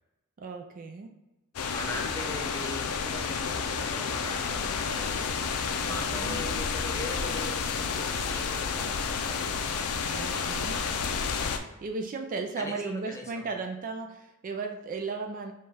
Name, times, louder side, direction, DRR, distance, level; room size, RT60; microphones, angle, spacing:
voice 1, 0.4-1.1 5.9-6.4 10.1-10.8 11.8-15.5, right 4 dB, 40° right, 5 dB, 0.3 m, -35 dB
sound 1, 1.6-11.6, left 5 dB, 80° left, 0.4 m, -30 dB
voice 2, 1.7-5.3 5.8-9.4 12.6-13.5, left 2 dB, 15° left, 0 dB, 0.6 m, -40 dB
5.2 x 2.3 x 3.4 m, 1.0 s
head